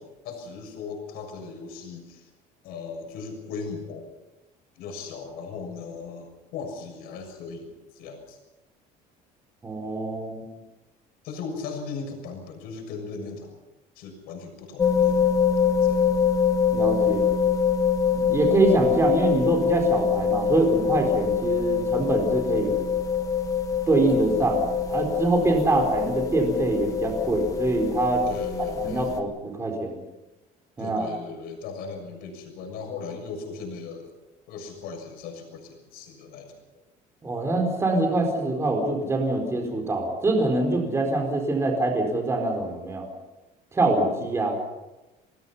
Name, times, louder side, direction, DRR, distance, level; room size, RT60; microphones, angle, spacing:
voice 1, 0.0-2.3 2.6-4.1 4.7-8.4 11.2-13.6 13.9-16.1 28.3-29.1 30.8-34.1 34.5-36.6, left 4 dB, 65° left, 4 dB, 6.9 m, -38 dB
voice 2, 9.6-10.4 16.7-17.3 18.2-22.8 23.9-28.2 28.8-30.0 30.8-31.1 37.2-43.1 43.7-44.6, right 2 dB, 15° right, 2 dB, 4.5 m, -24 dB
sound 1, 14.8-29.2, left 7 dB, 20° left, 1.6 m, -24 dB
28.0 x 20.0 x 5.7 m, 1.0 s
cardioid pair, 160°, 17 cm